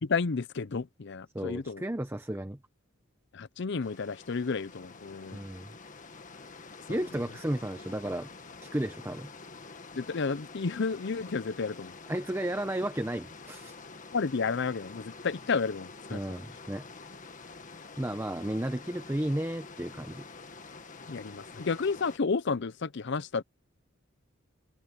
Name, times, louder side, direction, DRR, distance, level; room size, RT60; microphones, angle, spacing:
voice 1, 0.0-1.8 3.3-5.4 6.9-7.0 10.0-11.9 14.1-16.4 21.1-23.4, left 4 dB, 60° left, 0.6 m, -31 dB
voice 2, 1.3-2.6 5.3-5.7 6.9-8.3 8.6-9.3 12.1-13.7 16.1-16.8 18.0-20.2, right 1 dB, 10° right, 0.9 m, -33 dB
sound 1, 3.8-22.2, left 4 dB, 40° left, 1.7 m, -47 dB
head